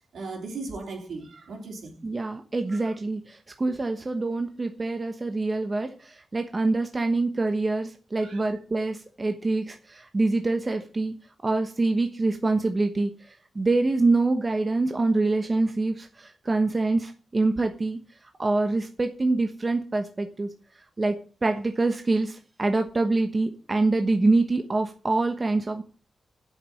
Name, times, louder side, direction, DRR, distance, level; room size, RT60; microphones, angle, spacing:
voice 1, 0.1-1.9 2.9-3.0 8.2-8.4, right 3 dB, 80° right, 3.6 m, -37 dB
voice 2, 2.0-18.0 18.4-20.5 21.0-25.8, right 3 dB, 35° right, 1.1 m, -25 dB
8.1 x 6.8 x 7.7 m
cardioid pair, 70°, 0 cm